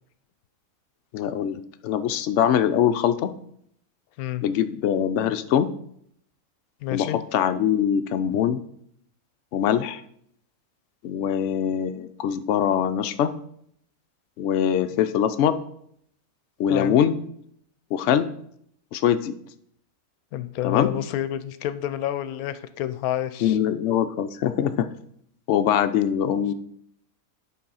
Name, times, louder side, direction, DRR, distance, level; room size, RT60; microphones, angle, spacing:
voice 1, 1.1-3.3 4.4-5.7 6.9-8.6 9.5-10.0 11.0-13.3 14.4-15.6 16.6-17.2 17.9-18.3 18.9-19.3 20.6-20.9 23.4-24.9 25.5-26.5, left 9 dB, 65° left, 8 dB, 0.8 m, -23 dB
voice 2, 6.8-7.2 16.7-17.0 20.3-23.6, left 12 dB, 85° left, 13 dB, 1.1 m, -29 dB
10.0 x 4.0 x 5.5 m, 0.69 s
omnidirectional pair, 1.5 m